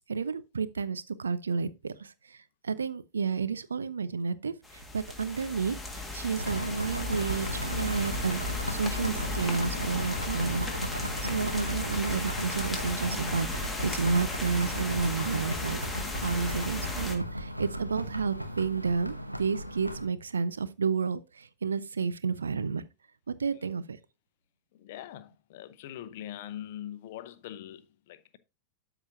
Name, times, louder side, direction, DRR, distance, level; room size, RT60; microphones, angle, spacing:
voice 1, 0.1-2.4 2.6-4.5 4.9-8.4 8.7-15.8 16.2-22.8 23.4-24.0, right 5 dB, 70° right, 0.6 m, -31 dB
sound 1, 4.6-17.2, left 2 dB, 5° left, 1.7 m, -35 dB
sound 2, 6.4-20.1, equal, 90° right, 0.9 m, -36 dB
voice 2, 24.7-28.4, left 11 dB, 50° left, 0.7 m, -42 dB
12.5 x 4.9 x 2.6 m
figure-of-eight pair, 90°, 0 cm